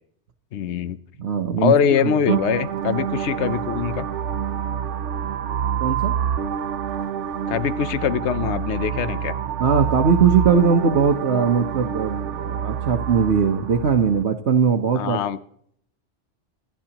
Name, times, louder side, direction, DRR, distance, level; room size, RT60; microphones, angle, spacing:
voice 1, 0.5-1.0 1.6-4.1 7.5-9.3 15.0-15.4, left 8 dB, 75° left, 13 dB, 1.0 m, -23 dB
voice 2, 1.2-2.2 5.8-6.1 9.6-15.2, right 6 dB, 70° right, 2 dB, 1.2 m, -20 dB
sound 1, 2.3-14.2, right 8 dB, 85° right, 1.1 m, -27 dB
27.5 x 11.5 x 2.9 m, 0.66 s
omnidirectional pair, 1.2 m